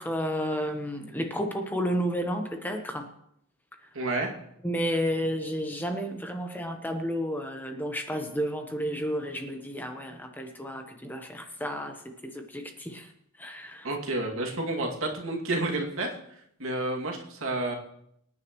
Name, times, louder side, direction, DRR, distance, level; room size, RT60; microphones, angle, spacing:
voice 1, 0.0-3.1 4.6-13.1 13.4-13.9, equal, 10° left, 4 dB, 1.0 m, -31 dB
voice 2, 3.9-4.3 13.8-16.2 16.6-17.8, right 2 dB, 70° right, 0 dB, 2.4 m, -30 dB
25.0 x 9.6 x 3.1 m, 0.74 s
head